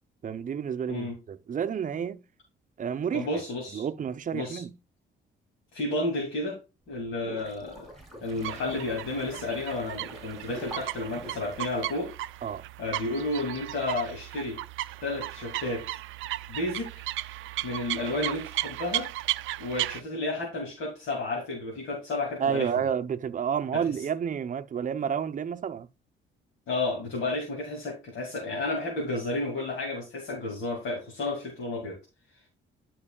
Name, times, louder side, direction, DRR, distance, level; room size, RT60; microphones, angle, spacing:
voice 1, 0.2-2.2 2.8-3.3 3.7-4.7 12.4-12.6 22.4-25.9, right 7 dB, 40° right, 0.7 m, -30 dB
voice 2, 3.1-3.8 4.3-4.6 5.7-6.6 6.9-7.9 8.2-12.1 12.8-14.6 15.0-15.9 16.5-17.0 17.6-19.1 19.6-22.7 23.7-23.8 26.7-32.0, left 2 dB, 75° left, 2.5 m, -32 dB
sound 1, 6.9-12.3, equal, ahead, 3.3 m, -46 dB
sound 2, 8.3-20.0, right 16 dB, 80° right, 0.4 m, -35 dB
12.5 x 4.7 x 2.3 m
cardioid pair, 90°, 20 cm